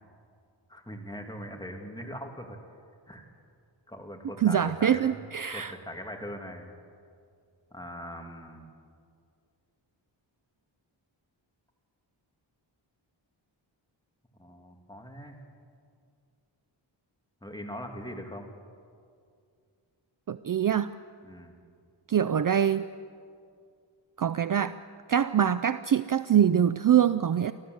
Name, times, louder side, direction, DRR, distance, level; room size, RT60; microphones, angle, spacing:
voice 1, 0.7-2.6 3.1-3.3 3.9-5.2 5.5-6.7 7.7-8.7 14.4-15.4 17.4-18.5 21.2-21.5, equal, 10° left, 2 dB, 2.7 m, -41 dB
voice 2, 4.4-5.7 20.3-20.9 22.1-22.9 24.2-24.8 25.1-27.5, right 9 dB, 45° right, 14 dB, 0.5 m, -24 dB
24.5 x 15.0 x 7.9 m, 2.3 s
wide cardioid pair, 90°, 46 cm